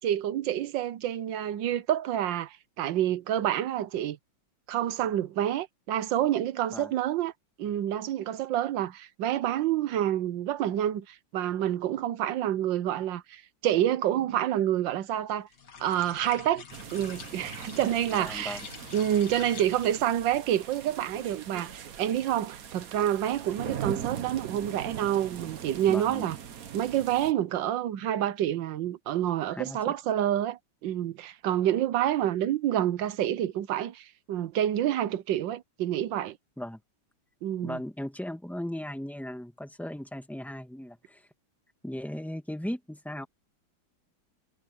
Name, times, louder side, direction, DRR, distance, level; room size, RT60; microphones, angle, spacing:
voice 1, 0.0-4.2 4.7-7.3 7.6-15.5 15.8-16.6 16.9-18.6 18.9-26.4 26.7-36.4 37.4-37.8, right 11 dB, 75° right, 1.5 m, -28 dB
sound 1, 15.5-20.2, left 6 dB, 60° left, 2.2 m, -45 dB
sound 2, 16.7-27.3, right 8 dB, 50° right, 1.4 m, -41 dB
voice 2, 18.1-18.7 25.9-26.3 29.5-29.9 36.6-36.8 37.6-41.3 41.8-43.3, left 1 dB, ahead, 1.6 m, -37 dB
omnidirectional pair, 2.1 m